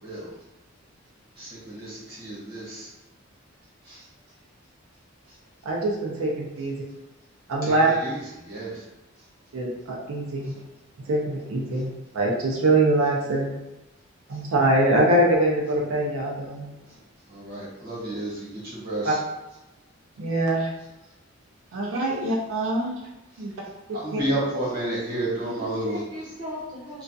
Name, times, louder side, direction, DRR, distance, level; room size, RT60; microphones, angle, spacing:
voice 1, 1.4-2.9 3.9-4.0 7.6-8.1 8.5-8.7 17.3-19.1 23.9-26.0, right 1 dB, 50° right, -6 dB, 1.0 m, -31 dB
voice 2, 5.6-6.8 7.5-7.9 9.5-10.5 11.1-13.5 14.3-16.7 19.0-19.1 20.2-20.7 21.7-23.0 23.4-23.5 24.1-24.2, right 1 dB, 90° right, -2 dB, 0.5 m, -23 dB
voice 3, 25.3-27.0, left 1 dB, 20° right, -7 dB, 0.5 m, -38 dB
2.3 x 2.3 x 2.6 m, 0.97 s
head